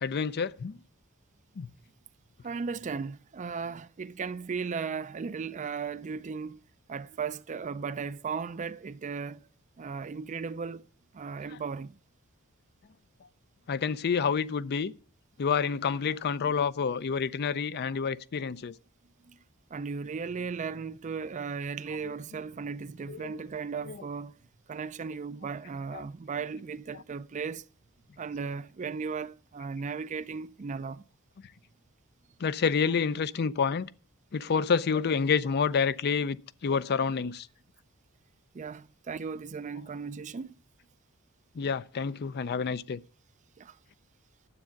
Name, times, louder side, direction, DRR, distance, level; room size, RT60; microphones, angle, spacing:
voice 1, 0.0-0.8 1.6-1.7 13.7-14.9 15.4-18.8 23.1-23.4 23.8-24.1 25.9-26.0 32.4-33.9 34.3-37.5 41.6-43.0, left 6 dB, 50° left, 0.4 m, -28 dB
voice 2, 2.4-6.6 6.9-9.5 9.8-10.9 11.1-12.0 19.3-19.4 19.7-24.3 24.7-27.7 28.2-31.0 38.5-40.5 43.6-43.8, right 5 dB, 35° right, 0.4 m, -36 dB
9.7 x 7.8 x 5.8 m
head